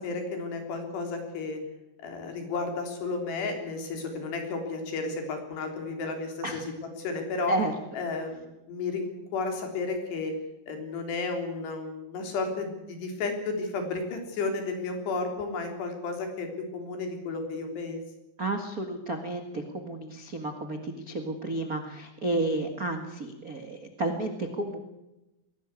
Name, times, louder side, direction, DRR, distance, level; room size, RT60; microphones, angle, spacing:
voice 1, 0.0-1.6 2.0-6.7 7.0-7.6 7.9-10.3 10.7-18.0, left 3 dB, 70° left, 4 dB, 5.6 m, -33 dB
voice 2, 18.4-24.8, right 2 dB, 85° right, 4 dB, 0.7 m, -31 dB
22.5 x 17.5 x 8.3 m, 0.96 s
omnidirectional pair, 5.1 m